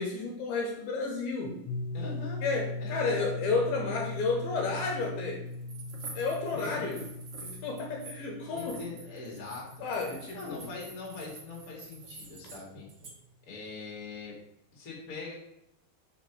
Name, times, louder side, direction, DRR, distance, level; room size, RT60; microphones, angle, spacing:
voice 1, 0.0-1.6 2.4-5.5 6.1-7.0 7.4-8.8 9.8-10.7, left 4 dB, 75° left, 0 dB, 2.5 m, -32 dB
sound 1, 1.7-12.2, left 2 dB, 90° left, 2.8 m, -40 dB
voice 2, 1.9-2.4 2.8-3.2 6.5-7.1 8.5-9.7 10.3-12.9 13.4-14.4 14.7-15.3, left 4 dB, 35° left, -3 dB, 1.5 m, -42 dB
sound 2, 5.5-8.2 8.5-12.6 12.9-13.1, right 4 dB, 90° right, 1.2 m, -48 dB
5.1 x 4.9 x 5.9 m, 0.85 s
omnidirectional pair, 4.9 m